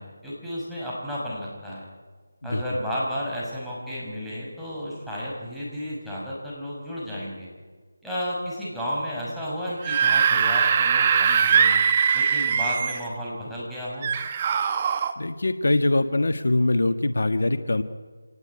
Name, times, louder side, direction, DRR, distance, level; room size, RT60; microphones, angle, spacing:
voice 1, 0.0-1.8 2.4-7.5 8.0-11.8 12.1-14.1, equal, ahead, -9 dB, 5.9 m, -32 dB
Screaming / Screech, 9.7-13.1 14.0-15.1, right 7 dB, 25° right, 1.4 m, -21 dB
voice 2, 15.2-17.8, left 2 dB, 65° left, 9 dB, 1.5 m, -23 dB
26.5 x 18.5 x 9.9 m, 1.5 s
figure-of-eight pair, 165°, 0 cm